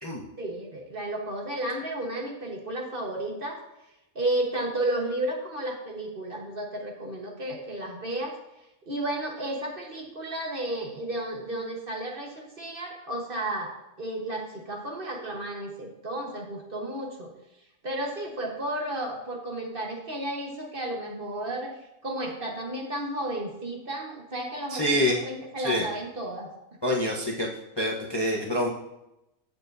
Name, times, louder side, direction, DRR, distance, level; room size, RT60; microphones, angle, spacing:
voice 1, 0.4-3.6 4.1-8.4 8.9-17.3 17.8-21.8 22.0-26.8, right 1 dB, 40° right, 0 dB, 1.5 m, -33 dB
voice 2, 24.7-25.2 25.6-25.8 26.8-27.5 27.8-28.7, equal, 20° left, -2 dB, 0.9 m, -26 dB
15.0 x 6.7 x 2.7 m, 0.89 s
omnidirectional pair, 1.5 m